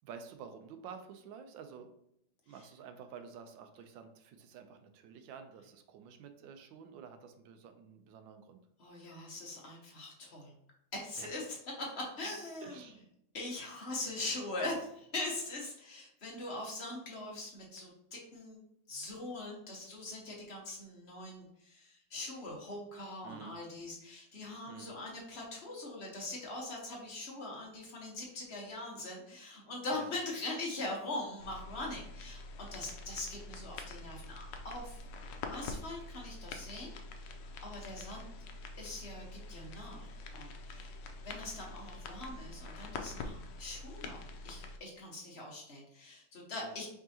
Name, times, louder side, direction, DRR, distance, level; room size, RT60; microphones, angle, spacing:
voice 1, 0.0-1.9 2.5-8.6 11.2-11.4 12.6-13.0 23.2-23.6 24.7-24.9 29.9-30.2 46.5-46.8, right 6 dB, 80° right, 7 dB, 1.3 m, -50 dB
voice 2, 8.8-10.5 10.9-11.4 11.8-12.9 13.3-18.6 18.9-35.0 35.5-37.2 37.6-38.2 38.8-40.1 40.3-41.0 41.2-46.9, left 2 dB, 40° left, -2 dB, 1.3 m, -42 dB
sound 1, 31.4-44.8, left 3 dB, 75° left, 1.2 m, -46 dB
4.7 x 3.7 x 2.8 m, 0.75 s
omnidirectional pair, 2.1 m